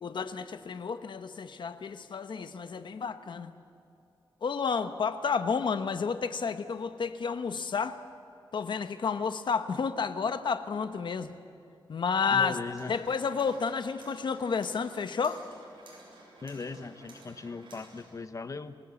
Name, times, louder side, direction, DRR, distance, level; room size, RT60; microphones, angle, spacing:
voice 1, 0.0-3.5 4.4-8.0 8.5-11.3 11.9-12.6 12.9-15.4, left 5 dB, 65° left, 10 dB, 1.2 m, -31 dB
voice 2, 12.3-12.9 16.4-18.8, left 4 dB, 40° left, 11 dB, 1.1 m, -39 dB
sound 1, 12.8-18.1, right 2 dB, 75° right, 7.6 m, -54 dB
27.5 x 18.5 x 8.5 m, 2.6 s
wide cardioid pair, 120°, 9 cm